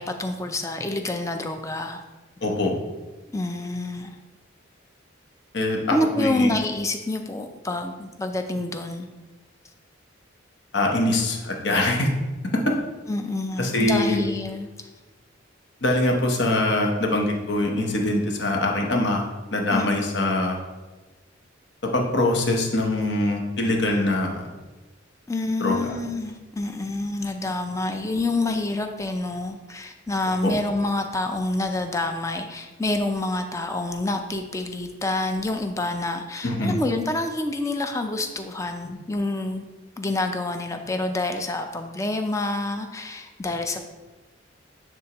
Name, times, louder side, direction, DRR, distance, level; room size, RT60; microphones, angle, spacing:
voice 1, 0.0-2.0 3.3-4.1 5.9-9.1 13.1-14.7 19.7-19.9 25.3-39.6 40.0-43.9, left 2 dB, 15° left, 6 dB, 0.4 m, -27 dB
voice 2, 2.4-2.7 5.5-5.8 6.2-6.5 10.7-12.1 12.5-12.8 13.6-14.2 15.8-19.3 19.5-20.6 21.8-24.5 25.6-25.9 30.4-30.5 36.4-36.8, left 1 dB, 60° left, 2 dB, 1.0 m, -23 dB
9.7 x 3.5 x 3.0 m, 1.2 s
head